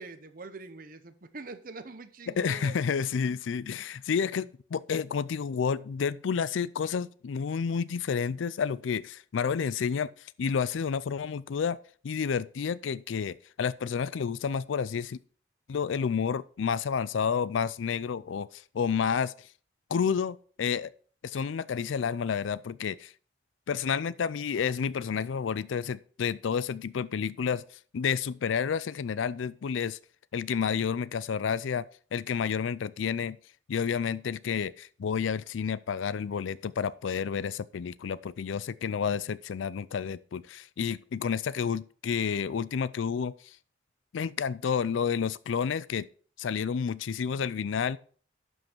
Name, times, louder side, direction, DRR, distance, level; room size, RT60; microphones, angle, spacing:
voice 1, 0.0-2.8, right 3 dB, 45° right, 0.8 m, -44 dB
voice 2, 2.3-10.1 10.4-11.8 12.0-15.2 15.7-19.3 19.9-20.9 21.2-23.1 23.7-27.6 27.9-30.0 30.3-31.9 32.1-33.4 33.7-43.3 44.1-46.1 46.4-48.0, left 6 dB, 85° left, 0.4 m, -30 dB
11.5 x 5.5 x 4.5 m
head